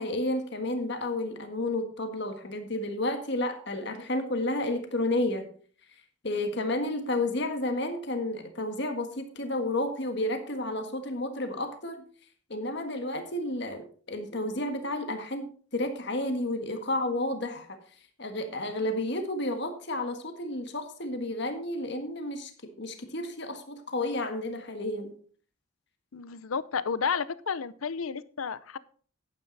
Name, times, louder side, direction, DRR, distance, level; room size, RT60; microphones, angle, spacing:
voice 1, 0.0-5.5 6.2-12.0 12.5-17.7 18.2-22.5 22.8-25.1, left 1 dB, 55° left, 6 dB, 1.6 m, -31 dB
voice 2, 26.1-28.8, left 6 dB, 80° left, 17 dB, 0.6 m, -31 dB
10.5 x 9.3 x 4.0 m, 0.44 s
head